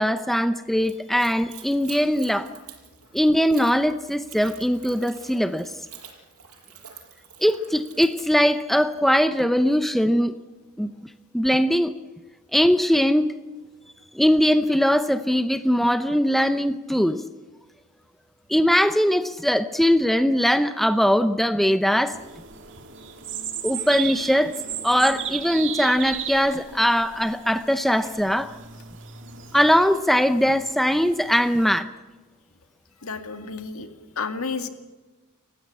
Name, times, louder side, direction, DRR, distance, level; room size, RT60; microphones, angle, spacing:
voice 1, 0.0-2.5 3.1-5.7 7.4-10.3 10.8-10.9 11.3-11.9 12.5-13.3 14.1-17.2 18.5-22.2 23.6-24.5 24.8-28.5 29.5-31.9, equal, ahead, 10 dB, 0.7 m, -21 dB
Splash splatter / Trickle dribble, 0.8-9.1, right 8 dB, 80° right, 5.8 m, -47 dB
sound 1, 22.1-31.8, right 9 dB, 55° right, 2.3 m, -36 dB
voice 2, 33.0-34.7, left 4 dB, 65° left, 7 dB, 2.1 m, -31 dB
28.5 x 15.5 x 8.6 m, 1.2 s
head